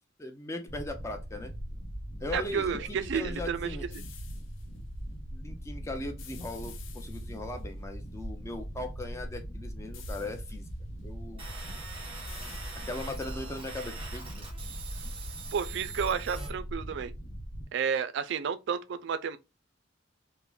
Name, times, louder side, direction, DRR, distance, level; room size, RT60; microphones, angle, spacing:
voice 1, 0.2-1.5 2.2-3.9 5.3-10.7 11.0-11.4 12.9-14.5, left 2 dB, 15° left, 0.5 m, -39 dB
sound 1, 0.7-17.6, equal, 65° left, 0.9 m, -40 dB
voice 2, 2.3-3.8 15.5-17.1 17.7-19.4, right 6 dB, 65° right, 0.3 m, -31 dB
sound 2, 3.9-4.7 6.2-7.6 9.9-10.7 12.3-13.3, left 9 dB, 85° left, 0.5 m, -51 dB
sound 3, 11.4-16.5, right 4 dB, 30° right, 1.0 m, -44 dB
3.7 x 2.0 x 2.2 m
head